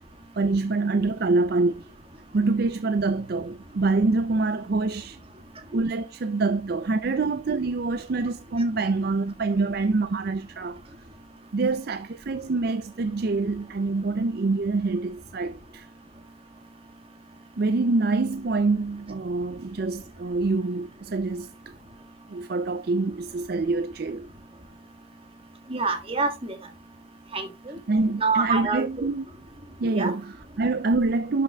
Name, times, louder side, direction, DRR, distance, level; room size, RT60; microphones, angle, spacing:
voice 1, 0.4-1.8 2.3-5.2 5.7-10.8 11.5-15.9 17.6-21.5 22.3-24.3 27.9-29.3 29.8-31.4, right 3 dB, 50° right, 0.4 m, -25 dB
voice 2, 25.7-26.6 27.3-27.7 28.2-28.8 29.9-30.1, right 4 dB, 30° right, 1.6 m, -26 dB
12.0 x 5.8 x 2.3 m
head